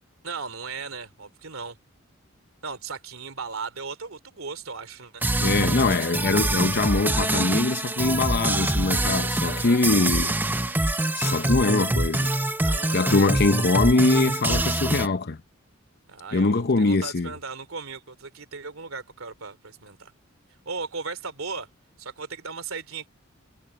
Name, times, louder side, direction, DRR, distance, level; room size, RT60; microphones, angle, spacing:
voice 1, 0.2-1.8 2.6-6.1 9.4-9.8 12.6-13.2 16.1-20.1 20.6-21.7 22.0-23.1, right 4 dB, 85° right, 2.8 m, -37 dB
sound 1, 5.2-15.1, right 2 dB, 10° right, 0.6 m, -25 dB
voice 2, 5.4-10.4 10.6-10.8 11.1-12.3 12.9-15.4 16.3-17.3, left 3 dB, 50° left, 0.8 m, -23 dB
head